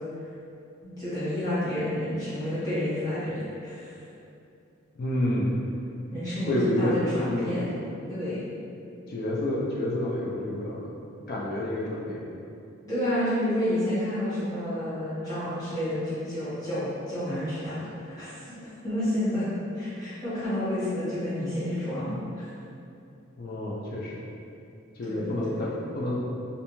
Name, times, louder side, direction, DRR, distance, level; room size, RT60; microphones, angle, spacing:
voice 1, 0.8-3.3 3.6-3.9 6.1-7.6 8.1-8.5 12.8-18.4 18.8-19.5 19.7-22.5 25.1-25.6, left 1 dB, 20° left, -14 dB, 1.2 m, -30 dB
voice 2, 4.9-5.5 6.3-7.0 7.2-7.6 9.1-11.0 11.3-12.2 23.4-24.2 24.9-26.2, left 1 dB, 45° left, -4 dB, 0.3 m, -29 dB
2.5 x 2.1 x 2.9 m, 2.7 s
head